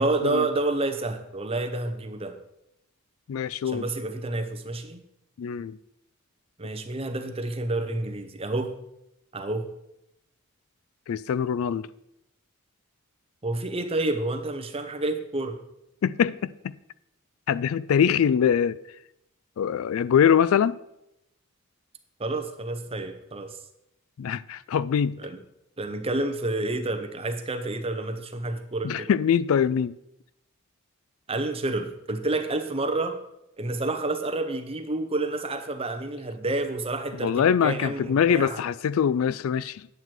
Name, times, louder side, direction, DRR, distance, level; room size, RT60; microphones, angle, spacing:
voice 1, 0.0-2.4 3.6-5.0 6.6-8.8 9.3-9.7 13.4-15.6 22.2-23.6 25.2-25.4 25.8-29.1 31.3-33.2 33.6-38.6, right 2 dB, 25° right, 0.9 m, -29 dB
voice 2, 3.3-3.8 5.4-5.8 11.1-11.8 16.0-16.5 17.5-18.8 19.6-20.8 24.2-25.2 28.8-29.9 37.2-39.9, left 8 dB, 70° left, 0.3 m, -23 dB
9.3 x 8.0 x 4.5 m
head